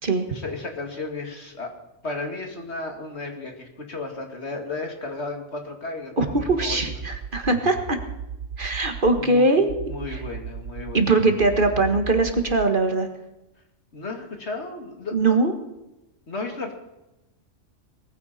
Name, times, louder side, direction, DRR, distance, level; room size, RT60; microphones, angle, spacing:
voice 1, 0.3-1.7 2.0-6.9 9.2-9.6 9.8-11.1 13.9-15.4 16.3-16.7, left 3 dB, 65° left, 3 dB, 2.7 m, -34 dB
voice 2, 6.2-8.0 8.6-9.7 10.1-10.2 10.9-13.1 15.1-15.5, right 3 dB, 45° right, 6 dB, 1.8 m, -21 dB
sound 1, 6.3-9.3 9.7-12.7, right 6 dB, 85° right, 1.2 m, -36 dB
20.0 x 14.5 x 4.3 m, 0.95 s
omnidirectional pair, 1.2 m